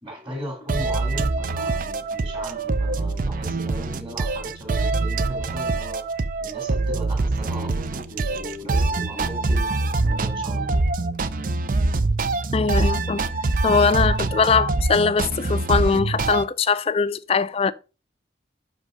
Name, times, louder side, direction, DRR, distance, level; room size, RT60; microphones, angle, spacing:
voice 1, 0.0-10.8, equal, 25° right, 2.1 m, -37 dB
sound 1, 0.7-16.4, right 3 dB, 50° right, 0.5 m, -24 dB
voice 2, 12.5-13.2 13.6-17.7, left 5 dB, 35° left, 0.4 m, -21 dB
6.2 x 5.2 x 4.9 m
head